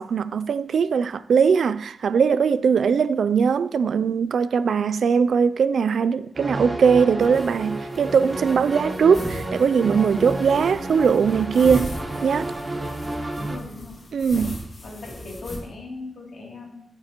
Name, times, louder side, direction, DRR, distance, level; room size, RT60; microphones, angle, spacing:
voice 1, 0.0-11.9 12.2-12.5 14.1-14.6, right 6 dB, 75° right, 0.3 m, -20 dB
sound 1, 6.3-13.6, right 2 dB, 20° right, 1.1 m, -31 dB
sound 2, 7.2-15.6, equal, 40° left, 2.0 m, -39 dB
voice 2, 13.3-14.0 14.3-14.5 14.8-16.9, left 3 dB, 60° left, 2.9 m, -38 dB
14.5 x 7.4 x 3.0 m
wide cardioid pair, 170°, 0 cm